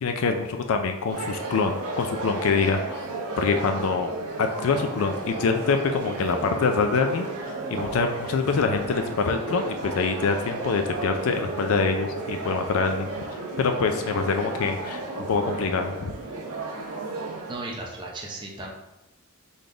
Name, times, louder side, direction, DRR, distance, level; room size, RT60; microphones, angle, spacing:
voice 1, 0.0-3.0 3.4-4.1 4.4-13.1 13.6-16.1, left 4 dB, 70° left, 6 dB, 0.4 m, -25 dB
sound 1, 1.1-17.5, right 2 dB, 85° right, 0.8 m, -33 dB
voice 2, 17.5-18.7, right 2 dB, 20° right, -3 dB, 0.7 m, -35 dB
4.0 x 3.4 x 3.7 m, 0.94 s
head